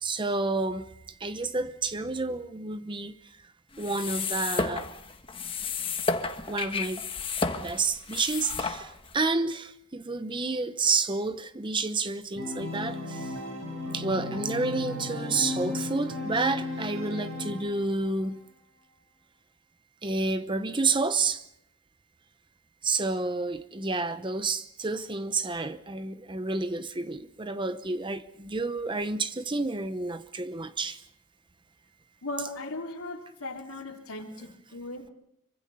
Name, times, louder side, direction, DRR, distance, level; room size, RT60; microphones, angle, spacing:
voice 1, 0.0-3.5 3.8-4.9 6.5-7.0 7.6-13.4 13.9-18.4 20.0-21.4 22.8-31.0, right 3 dB, 20° right, 0.8 m, -30 dB
sound 1, 3.7-9.2, left 4 dB, 25° left, 1.4 m, -32 dB
Organ, 12.4-18.1, left 2 dB, 65° right, 6.6 m, -35 dB
voice 2, 32.2-35.1, left 2 dB, 90° left, 3.3 m, -38 dB
26.0 x 24.0 x 5.6 m
head